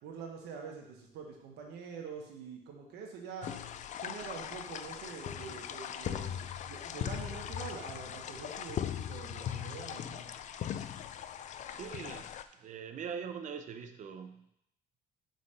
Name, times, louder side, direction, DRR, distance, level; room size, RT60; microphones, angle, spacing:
voice 1, 0.0-3.5 4.0-10.2, right 5 dB, 80° right, 1 dB, 1.2 m, -45 dB
sound 1, 3.4-12.4, left 9 dB, 45° left, 0.4 m, -39 dB
voice 2, 11.4-14.5, right 7 dB, 45° right, 8 dB, 0.6 m, -43 dB
5.6 x 4.0 x 5.0 m, 0.76 s
cardioid pair, 110°, 17 cm